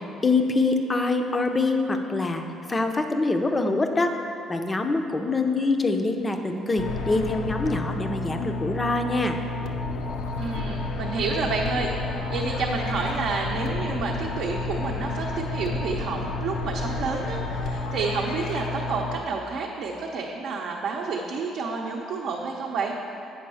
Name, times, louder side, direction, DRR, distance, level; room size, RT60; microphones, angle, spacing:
voice 1, 0.2-4.1 4.5-9.4, left 3 dB, 15° left, 5 dB, 0.5 m, -24 dB
sound 1, 6.8-19.2, left 2 dB, 75° left, 0.5 m, -31 dB
voice 2, 10.4-22.9, right 4 dB, 60° right, -2 dB, 0.7 m, -29 dB
8.6 x 5.3 x 5.6 m, 2.7 s
cardioid pair, 150°, 0 cm